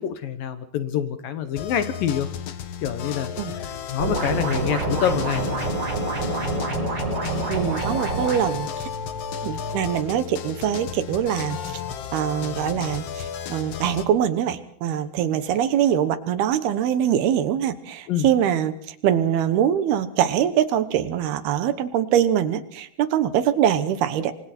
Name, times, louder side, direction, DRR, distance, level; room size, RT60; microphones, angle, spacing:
voice 1, 0.0-2.3 2.8-3.3 3.6-5.5 9.5-9.6 18.1-18.3, left 9 dB, 65° left, 10 dB, 2.5 m, -26 dB
sound 1, 1.6-14.1, left 7 dB, 80° left, 1.4 m, -34 dB
sound 2, 4.0-8.4, right 2 dB, 25° right, 6.2 m, -26 dB
voice 2, 7.5-8.9 9.4-11.6 12.1-24.3, right 10 dB, 75° right, 12 dB, 3.0 m, -23 dB
27.0 x 24.5 x 4.4 m, 0.64 s
omnidirectional pair, 4.8 m